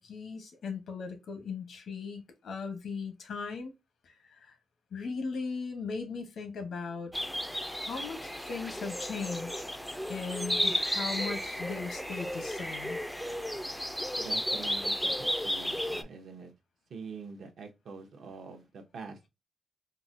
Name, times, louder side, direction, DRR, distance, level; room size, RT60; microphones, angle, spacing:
voice 1, 0.0-3.7 4.0-4.5 4.9-7.1 7.6-9.6 10.1-13.0, left 5 dB, 75° left, 0.9 m, -38 dB
sound 1, 7.1-16.0, equal, ahead, 0.3 m, -33 dB
voice 2, 14.2-16.5 16.9-19.2, right 5 dB, 75° right, 0.7 m, -45 dB
3.9 x 2.1 x 2.5 m
wide cardioid pair, 125°, 0 cm